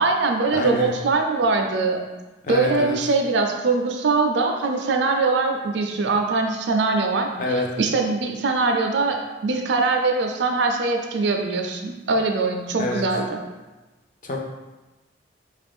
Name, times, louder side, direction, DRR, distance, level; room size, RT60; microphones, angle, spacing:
voice 1, 0.0-2.0 2.5-7.3 7.8-13.4, right 3 dB, 65° right, 4 dB, 0.4 m, -22 dB
voice 2, 0.5-0.9 2.4-3.0 7.4-7.7 12.8-13.0 14.2-14.4, left 2 dB, 45° left, 0 dB, 0.5 m, -26 dB
3.7 x 2.5 x 3.5 m, 1.1 s
head